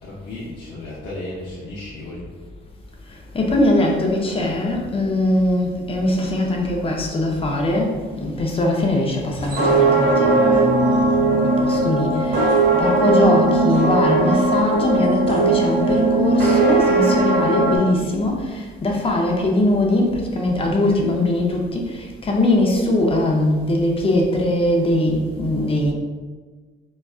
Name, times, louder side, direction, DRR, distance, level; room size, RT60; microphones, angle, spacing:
voice 1, 0.0-2.3, left 1 dB, 70° left, -8 dB, 0.7 m, -34 dB
voice 2, 3.1-25.9, left 1 dB, 30° left, 0 dB, 0.6 m, -21 dB
sound 1, 9.4-17.8, right 2 dB, 85° right, 1.2 m, -18 dB
4.0 x 2.3 x 2.3 m, 1.4 s
cardioid pair, 90°, 20 cm